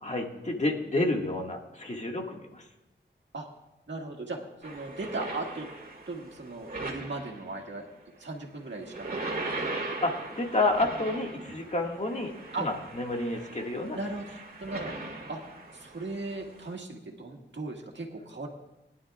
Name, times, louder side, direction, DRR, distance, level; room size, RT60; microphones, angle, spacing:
voice 1, 0.0-2.7 10.0-12.3 12.6-14.0, left 2 dB, 40° left, 1 dB, 2.0 m, -30 dB
voice 2, 3.9-5.7 6.1-7.8 8.2-9.7 12.5-12.7 13.9-14.2 14.6-14.9 15.3-15.4 15.7-18.5, right 2 dB, 75° right, 1 dB, 1.9 m, -37 dB
sound 1, 4.6-7.7 8.7-16.7, right 2 dB, 50° right, 2.1 m, -39 dB
22.0 x 11.0 x 2.5 m, 0.96 s
wide cardioid pair, 70°, 19 cm